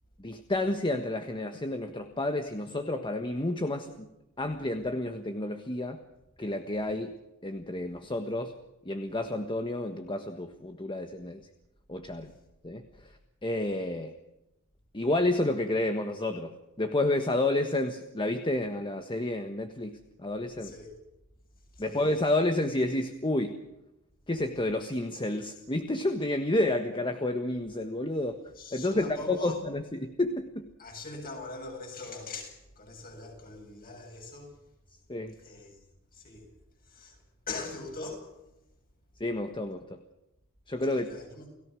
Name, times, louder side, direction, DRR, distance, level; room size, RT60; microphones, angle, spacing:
voice 1, 0.2-4.1 4.4-6.0 6.4-7.1 7.4-8.5 8.8-11.5 11.9-12.3 12.6-13.1 13.4-14.1 14.9-20.7 21.8-23.6 24.3-28.4 28.7-30.7 35.1-35.3 39.2-40.0 40.7-41.1, left 1 dB, 20° left, 1.5 m, -30 dB
voice 2, 20.6-21.0 21.6-22.0 28.5-29.6 30.8-34.6 35.4-36.5 36.8-38.4 40.9-41.5, left 3 dB, 45° left, 8.0 m, -42 dB
30.0 x 17.5 x 6.4 m
head